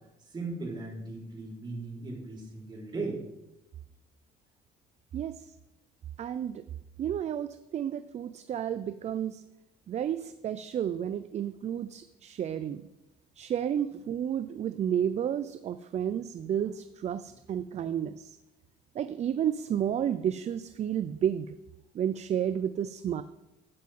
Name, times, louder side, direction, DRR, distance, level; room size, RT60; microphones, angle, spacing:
voice 1, 0.3-3.2, right 3 dB, 25° right, -3 dB, 4.1 m, -37 dB
voice 2, 5.1-5.4 6.2-6.6 7.0-9.4 9.9-12.9 13.4-18.4 19.0-21.5 21.9-23.2, right 9 dB, 40° right, 12 dB, 0.4 m, -31 dB
12.0 x 9.2 x 3.7 m, 0.95 s
cardioid pair, 110°, 17 cm